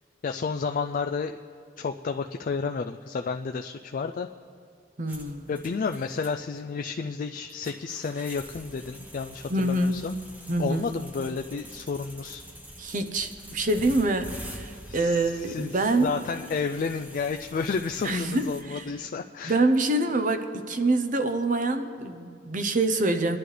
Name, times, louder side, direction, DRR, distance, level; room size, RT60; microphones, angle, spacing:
voice 1, 0.2-1.3 1.8-4.3 5.5-10.2 10.6-12.4 14.9-15.7 16.0-19.5, left 5 dB, 45° left, 6 dB, 0.4 m, -31 dB
voice 2, 5.0-5.6 9.5-10.0 10.5-10.9 12.8-16.1 18.0-18.8 19.4-23.4, right 2 dB, 45° right, 9 dB, 0.8 m, -26 dB
sound 1, 5.1-18.6, equal, 10° right, 1.0 m, -46 dB
23.0 x 11.5 x 3.3 m, 2.2 s
head